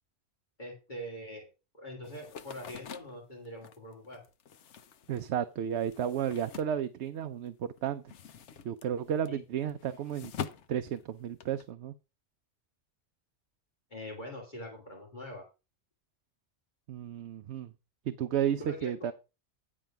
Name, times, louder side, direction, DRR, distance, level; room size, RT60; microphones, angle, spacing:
voice 1, 0.6-1.5 1.7-4.2 9.3-9.4 13.9-15.4 18.6-19.1, equal, 40° left, -2 dB, 2.5 m, -43 dB
sound 1, 2.0-7.5 7.8-11.7, left 7 dB, 85° left, 1.1 m, -45 dB
voice 2, 5.1-8.0 8.6-10.3 10.7-11.9 16.9-17.7 18.1-19.1, right 9 dB, 75° right, 10 dB, 0.9 m, -33 dB
10.0 x 5.1 x 5.8 m, 0.30 s
omnidirectional pair, 1.2 m